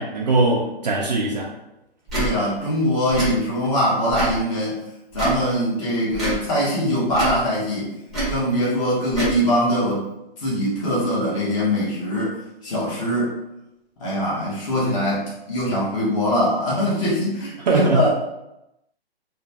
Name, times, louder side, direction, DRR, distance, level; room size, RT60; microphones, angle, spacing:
voice 1, 0.0-1.5 17.6-18.1, right 2 dB, 45° right, 0 dB, 0.4 m, -20 dB
voice 2, 2.1-4.8 5.1-7.9 8.3-10.0 10.4-12.3 12.6-13.3 14.0-18.1, equal, 30° left, -6 dB, 1.1 m, -22 dB
Tick / Tick-tock, 2.1-2.3 3.1-3.3 4.1-4.4 5.1-5.4 6.1-6.4 7.1-7.4 8.1-8.4 9.1-9.4, right 2 dB, ahead, 0.8 m, -25 dB
2.9 x 2.2 x 2.6 m, 0.90 s
hypercardioid pair, 140°, 32 cm